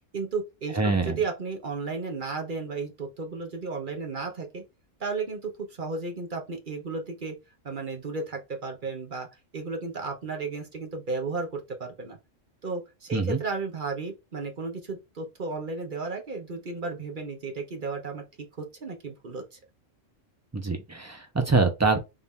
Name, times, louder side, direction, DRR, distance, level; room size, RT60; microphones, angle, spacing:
voice 1, 0.1-4.6 5.0-5.5 5.8-7.3 7.6-9.3 9.5-12.2 12.6-18.2 18.6-19.6, right 4 dB, 45° right, 1.0 m, -34 dB
voice 2, 0.7-1.2 13.1-13.4 20.5-22.0, right 3 dB, 20° right, 0.4 m, -24 dB
3.6 x 2.8 x 3.5 m
omnidirectional pair, 1.3 m